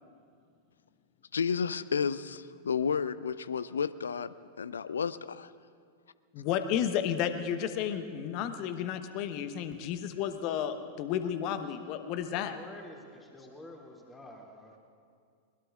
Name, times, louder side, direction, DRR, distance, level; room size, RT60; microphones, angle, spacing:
voice 1, 1.3-5.5, left 6 dB, 75° left, 16 dB, 0.4 m, -32 dB
voice 2, 6.3-12.5, left 9 dB, 45° left, 9 dB, 1.0 m, -32 dB
voice 3, 12.3-14.8, left 1 dB, 10° left, -1 dB, 2.7 m, -49 dB
21.5 x 21.0 x 2.5 m, 2.2 s
figure-of-eight pair, 90°, 0 cm